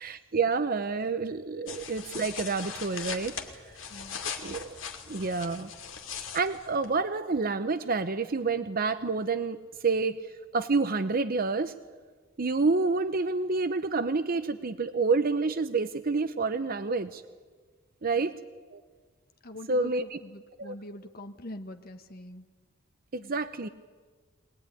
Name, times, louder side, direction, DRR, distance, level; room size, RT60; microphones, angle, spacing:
voice 1, 0.0-3.3 4.4-5.7 6.1-9.6 9.8-10.3 10.5-11.7 12.4-17.2 18.0-18.4 18.7-18.8 19.7-20.2 20.6-20.7 23.1-23.7, right 4 dB, 45° right, 11 dB, 0.8 m, -28 dB
sound 1, 1.7-7.0, left 7 dB, 75° left, 2.5 m, -40 dB
voice 2, 3.9-4.2 18.2-18.3 19.4-22.4 23.2-23.3, left 1 dB, 50° left, 5 dB, 1.4 m, -44 dB
23.0 x 19.5 x 9.9 m, 1.5 s
head